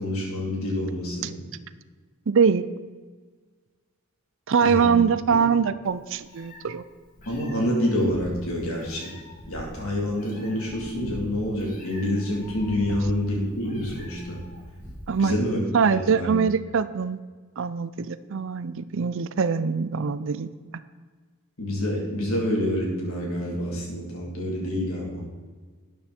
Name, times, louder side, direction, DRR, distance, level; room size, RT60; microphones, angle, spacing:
voice 1, 0.0-1.3 4.6-4.9 7.3-9.1 9.5-14.4 15.2-15.6 15.9-16.3 21.6-25.2, left 1 dB, 80° left, -2 dB, 3.6 m, -27 dB
voice 2, 2.3-2.6 4.5-6.8 15.1-15.4 15.7-17.2 17.6-20.5, right 6 dB, 65° right, 14 dB, 0.5 m, -23 dB
Meow, 5.9-15.2, left 1 dB, 40° left, 3.3 m, -43 dB
12.5 x 9.2 x 4.4 m, 1.4 s
head